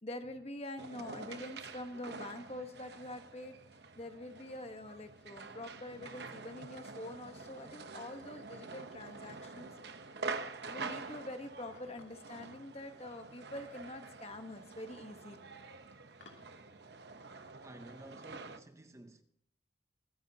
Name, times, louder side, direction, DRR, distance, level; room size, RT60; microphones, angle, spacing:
voice 1, 0.0-3.5 4.0-9.7 10.7-15.5, left 1 dB, 35° left, 1.1 m, -45 dB
Southbank Skatepark, 0.8-18.6, right 4 dB, 65° right, 0.9 m, -47 dB
sound 1, 3.2-16.4, left 3 dB, 80° left, 2.6 m, -69 dB
voice 2, 17.6-19.2, right 1 dB, 15° right, 0.6 m, -53 dB
24.5 x 9.4 x 2.8 m
head